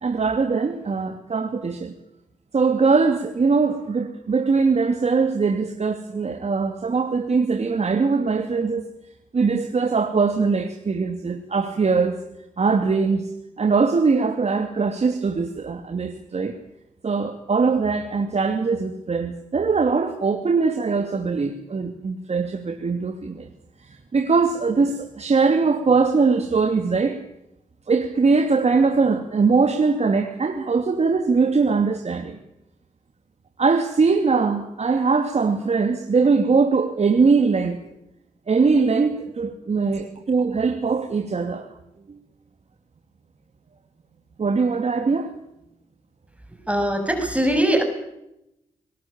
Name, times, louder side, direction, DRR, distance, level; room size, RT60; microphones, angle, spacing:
voice 1, 0.0-1.9 2.5-8.9 9.3-12.2 12.6-13.3 13.6-16.6 17.0-23.5 23.8-27.2 27.9-32.4 33.6-37.8 38.5-41.7 44.4-45.3, right 4 dB, 50° right, 5 dB, 2.6 m, -21 dB
voice 2, 46.7-47.8, right 1 dB, 10° right, 6 dB, 6.5 m, -21 dB
23.0 x 20.0 x 8.8 m, 0.85 s
supercardioid pair, 45°, 14 cm